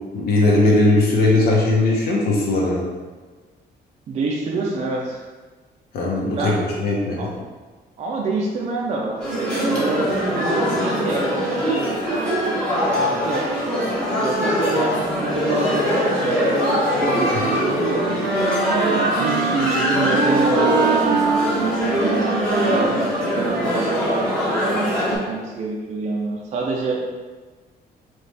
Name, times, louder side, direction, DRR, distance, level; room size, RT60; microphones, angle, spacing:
voice 1, 0.1-2.8 5.9-6.5 6.8-7.3 17.3-17.4 19.1-19.2, left 2 dB, 65° left, -3 dB, 0.9 m, -18 dB
voice 2, 4.1-5.2 6.2-6.6 7.2-7.3 8.0-11.9 13.0-16.6 16.9-18.2 19.2-23.1 23.4-27.0, right 3 dB, 40° right, -2 dB, 0.4 m, -27 dB
sound 1, 9.2-25.2, equal, 5° left, 1.1 m, -22 dB
Wind instrument woodwind instrument, 17.7-24.4, right 5 dB, 90° right, 0.6 m, -25 dB
4.0 x 3.1 x 3.3 m, 1.3 s
cardioid pair, 175°, 17 cm